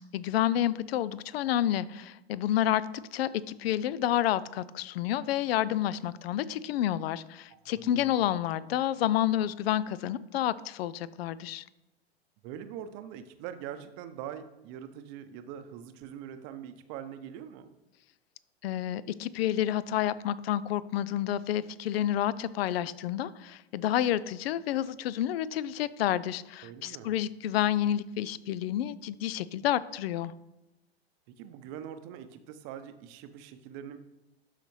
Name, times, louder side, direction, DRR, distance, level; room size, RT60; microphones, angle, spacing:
voice 1, 0.1-11.6 18.6-30.3, left 12 dB, 65° left, 18 dB, 0.5 m, -29 dB
voice 2, 7.5-8.2 12.4-17.7 26.6-27.2 31.3-34.0, right 9 dB, 45° right, 10 dB, 0.7 m, -43 dB
12.0 x 4.2 x 3.1 m, 0.95 s
hypercardioid pair, 105°, 32 cm